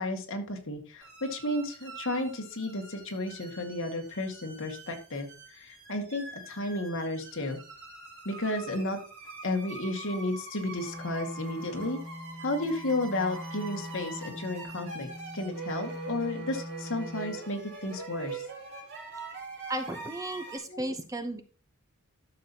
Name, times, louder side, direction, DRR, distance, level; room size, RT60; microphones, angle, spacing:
voice 1, 0.0-7.6 8.3-9.0 9.4-12.0 12.4-15.1 15.3-18.4 20.7-20.9, left 1 dB, 60° left, 3 dB, 2.0 m, -33 dB
sound 1, 1.0-20.6, right 3 dB, 60° right, 4.5 m, -44 dB
Wind instrument woodwind instrument, 10.7-17.4, left 1 dB, 10° left, 1.8 m, -42 dB
voice 2, 19.7-21.4, right 1 dB, 15° right, 8 dB, 0.9 m, -34 dB
13.0 x 6.9 x 2.9 m, 0.36 s
head